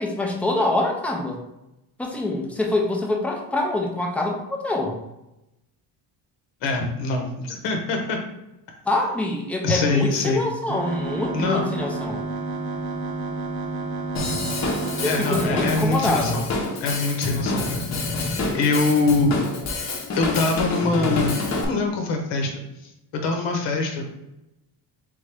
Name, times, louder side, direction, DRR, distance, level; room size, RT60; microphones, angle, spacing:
voice 1, 0.0-1.4 2.0-5.0 8.9-12.2 15.0-16.5, left 2 dB, 5° left, 0 dB, 0.3 m, -25 dB
voice 2, 6.6-8.2 9.6-10.4 11.3-11.6 15.0-16.4 16.8-17.8 18.2-19.4 20.1-21.4 21.7-22.5 23.1-24.1, left 3 dB, 85° left, 2 dB, 1.0 m, -24 dB
sound 1, 10.7-15.7, right 3 dB, 85° right, 0.9 m, -30 dB
Drum kit / Drum, 14.1-21.6, left 3 dB, 40° left, 0.7 m, -27 dB
3.7 x 3.7 x 3.3 m, 0.91 s
cardioid pair, 170°, 42 cm